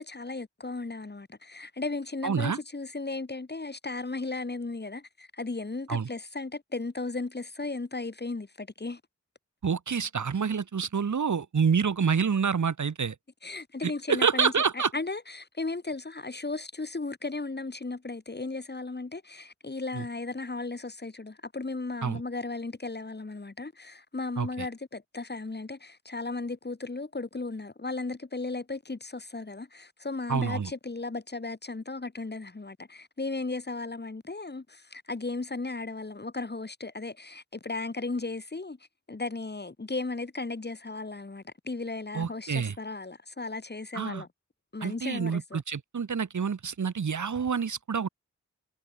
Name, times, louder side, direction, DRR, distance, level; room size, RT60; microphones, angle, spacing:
voice 1, 0.0-9.0 13.4-38.8 39.1-44.3 44.7-45.6, left 3 dB, 35° left, 2.3 m, -35 dB
voice 2, 2.2-2.6 5.9-6.1 9.6-13.2 13.8-14.9 19.9-20.0 22.0-22.2 24.4-24.7 30.3-30.7 42.1-42.8 43.9-44.2 44.8-48.1, right 6 dB, 80° right, 1.6 m, -27 dB
wide cardioid pair, 90°, 29 cm